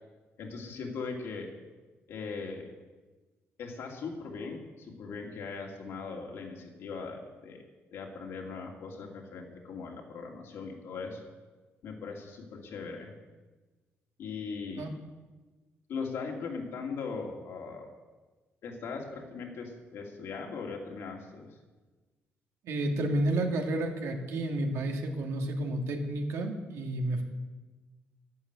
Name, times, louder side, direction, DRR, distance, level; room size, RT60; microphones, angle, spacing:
voice 1, 0.4-1.5 2.1-2.7 3.6-7.6 7.9-11.3 11.8-13.1 14.2-14.9 15.9-17.9 18.6-21.6, left 4 dB, 60° left, 0 dB, 2.8 m, -39 dB
voice 2, 22.6-27.2, right 1 dB, 85° right, 2 dB, 2.2 m, -31 dB
12.0 x 11.0 x 8.3 m, 1.3 s
cardioid pair, 180°, 5 cm